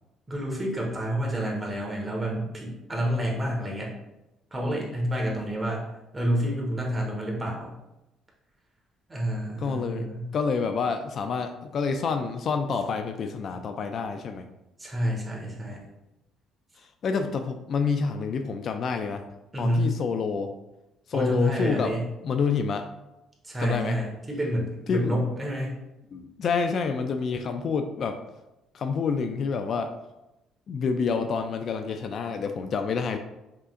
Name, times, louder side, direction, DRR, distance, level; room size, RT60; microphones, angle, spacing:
voice 1, 0.3-3.9 4.5-5.9 6.1-7.7 9.1-10.3 14.8-15.8 19.5-19.9 21.1-22.0 23.4-25.7, equal, 15° right, -2 dB, 1.4 m, -28 dB
voice 2, 9.6-14.5 17.0-19.2 19.6-20.5 21.1-21.9 22.2-22.9 23.6-24.0 24.9-25.1 26.1-28.2 28.7-29.9 30.7-33.2, left 5 dB, 50° left, 7 dB, 0.4 m, -28 dB
5.6 x 3.6 x 2.5 m, 0.95 s
cardioid pair, 105°, 0 cm